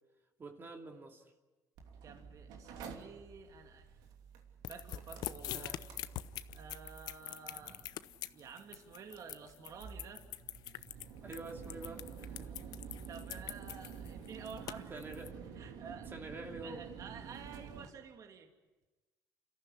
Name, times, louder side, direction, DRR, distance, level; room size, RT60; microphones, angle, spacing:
voice 1, 0.4-1.3 5.5-5.8 11.2-12.5 14.9-15.3 16.1-16.8, right 2 dB, 30° right, 3 dB, 2.6 m, -47 dB
Mechanical fan, 1.8-17.9, right 6 dB, 85° right, 2.9 m, -50 dB
voice 2, 2.0-3.9 4.7-5.9 6.2-7.9 8.3-10.2 13.1-15.0 15.6-16.1 16.6-18.5, right 6 dB, 55° right, 5 dB, 2.4 m, -51 dB
sound 1, 4.6-15.3, left 14 dB, 75° left, 0.7 m, -44 dB
29.5 x 14.5 x 10.0 m, 1.2 s
cardioid pair, 110°, 7 cm